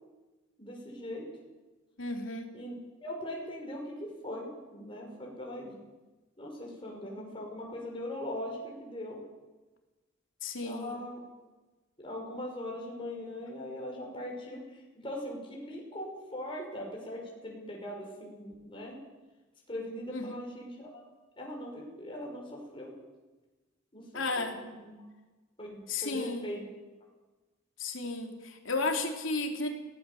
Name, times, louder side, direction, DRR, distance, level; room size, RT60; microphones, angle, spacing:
voice 1, 0.6-1.3 2.5-2.7 3.0-5.8 6.4-9.2 10.6-11.2 12.0-19.0 19.7-21.0 21.4-22.9 23.9-25.1 25.6-26.6, left 1 dB, 25° left, -1 dB, 5.8 m, -40 dB
voice 2, 2.0-2.5 10.4-11.0 20.1-20.3 24.1-24.6 25.9-26.5 27.8-29.7, left 3 dB, 75° left, 3 dB, 3.2 m, -33 dB
23.5 x 17.5 x 7.1 m, 1.2 s
head